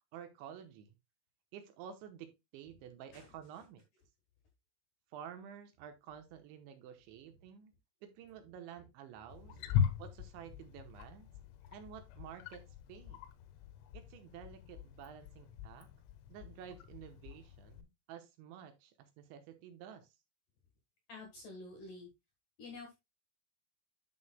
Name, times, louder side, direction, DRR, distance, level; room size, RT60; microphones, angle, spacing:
voice 1, 0.1-1.0 1.5-3.8 5.1-7.7 8.0-9.6 10.0-11.3 11.7-13.2 13.9-15.9 16.3-20.2, right 9 dB, 75° right, 3.0 m, -51 dB
Wild animals, 9.3-17.8, left 8 dB, 85° left, 3.7 m, -40 dB
voice 2, 9.3-9.9 21.1-22.1 22.6-22.9, left 2 dB, 60° left, 2.4 m, -50 dB
11.0 x 6.9 x 2.2 m
omnidirectional pair, 5.9 m